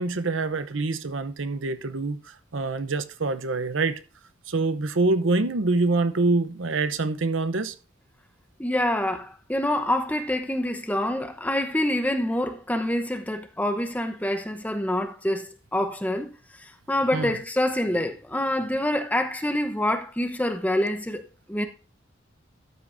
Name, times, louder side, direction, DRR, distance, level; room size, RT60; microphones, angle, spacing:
voice 1, 0.0-4.0 4.5-7.7 17.1-17.4, right 3 dB, 70° right, 0.8 m, -25 dB
voice 2, 8.6-16.3 16.9-21.2 21.5-21.7, left 1 dB, 10° left, 0.9 m, -26 dB
13.0 x 8.8 x 2.6 m
head